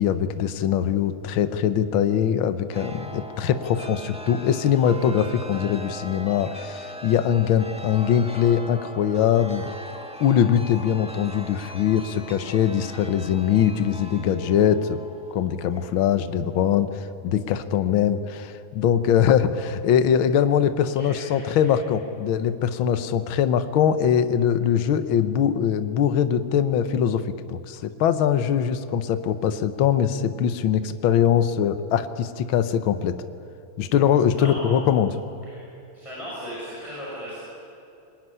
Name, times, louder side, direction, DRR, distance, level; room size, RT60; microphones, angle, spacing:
voice 1, 0.0-9.7 10.2-15.0 15.3-16.9 17.2-33.2 33.8-35.1, left 9 dB, 70° left, 11 dB, 1.7 m, -22 dB
Chime, 2.7-16.9, right 1 dB, 5° right, 1.2 m, -40 dB
voice 2, 20.9-21.8 34.3-34.8 35.4-35.6 35.9-37.4, equal, 15° left, -6 dB, 6.2 m, -37 dB
24.0 x 20.0 x 9.7 m, 2.8 s
omnidirectional pair, 2.4 m